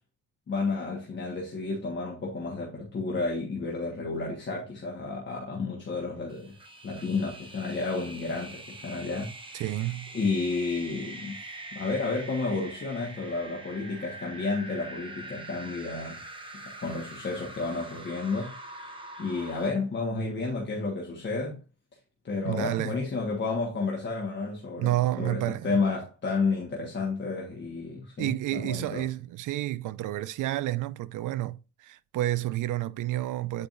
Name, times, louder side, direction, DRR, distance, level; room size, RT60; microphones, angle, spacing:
voice 1, 0.5-6.6 6.8-9.5 10.1-11.4 11.7-16.2 16.8-18.9 19.2-21.6 22.2-29.1, left 3 dB, 35° left, 1.4 m, -31 dB
sound 1, 6.3-19.7, right 2 dB, 15° right, 0.8 m, -44 dB
voice 2, 9.5-10.2 22.4-23.0 24.8-25.8 28.2-33.7, right 15 dB, 80° right, 0.5 m, -30 dB
8.8 x 4.7 x 2.6 m
cardioid pair, 165°, 31 cm